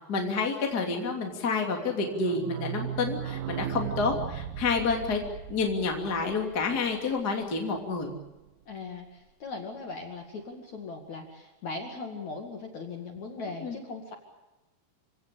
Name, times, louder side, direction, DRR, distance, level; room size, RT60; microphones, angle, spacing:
voice 1, 0.1-5.2 5.5-8.1 13.6-13.8, left 4 dB, 25° left, 1 dB, 2.8 m, -29 dB
sound 1, 1.9-7.4 7.7-7.8 8.0-8.1 8.4-8.5, right 10 dB, 70° right, 2.6 m, -37 dB
voice 2, 8.7-14.1, left 3 dB, 50° left, 3 dB, 2.9 m, -39 dB
27.5 x 18.0 x 8.5 m, 1.1 s
omnidirectional pair, 5.2 m